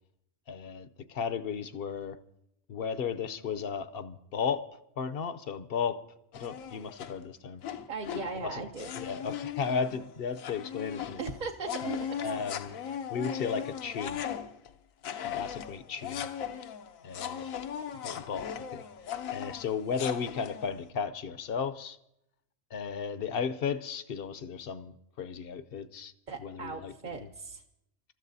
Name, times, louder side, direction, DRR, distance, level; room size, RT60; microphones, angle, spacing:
voice 1, 0.5-2.2 2.7-4.7 5.0-6.0 6.3-7.6 8.3-11.2 11.8-12.8 13.1-14.2 15.2-16.3 17.0-17.4 18.0-18.8 19.3-22.0 22.7-26.1 26.4-27.3, left 6 dB, 55° left, 0.8 m, -35 dB
sound 1, 6.3-7.2 7.6-8.4 8.8-14.7 15.0-20.8, left 9 dB, 90° left, 1.2 m, -38 dB
voice 2, 7.9-8.9 11.2-12.1 26.3-27.6, right 5 dB, 45° right, 0.7 m, -38 dB
27.5 x 13.5 x 2.7 m
omnidirectional pair, 1.4 m